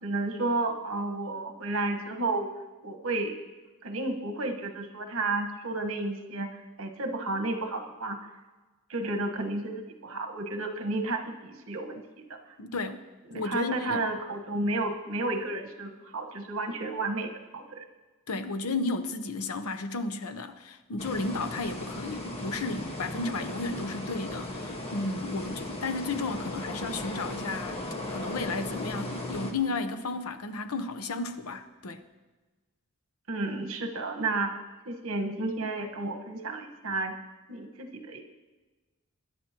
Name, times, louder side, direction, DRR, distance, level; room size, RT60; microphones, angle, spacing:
voice 1, 0.0-2.5 2.8-3.4 3.8-8.2 8.9-12.4 13.3-17.8 33.3-34.5 34.8-37.1 37.5-38.2, right 2 dB, 65° right, 4 dB, 1.4 m, -32 dB
voice 2, 12.6-13.0 13.3-14.1 18.3-32.0, left 3 dB, 80° left, 9 dB, 0.8 m, -33 dB
sound 1, 21.0-29.5, left 1 dB, 25° left, 1.5 m, -37 dB
22.0 x 11.0 x 3.0 m, 1.2 s
head